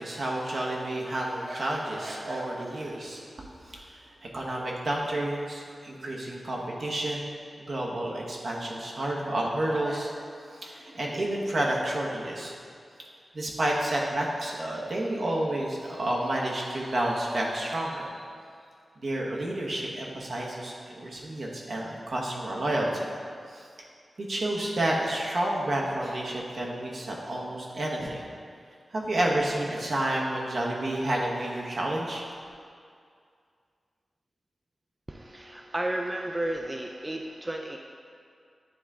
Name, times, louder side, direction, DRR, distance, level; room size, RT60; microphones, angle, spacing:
voice 1, 0.0-10.2 10.5-12.5 13.3-18.2 19.0-23.0 23.5-23.7 24.2-28.2 28.9-32.2, right 1 dB, 60° right, -2 dB, 1.0 m, -30 dB
voice 2, 35.1-37.8, right 1 dB, 20° right, 1 dB, 0.3 m, -33 dB
9.0 x 3.7 x 3.5 m, 2.3 s
wide cardioid pair, 80°, 0 cm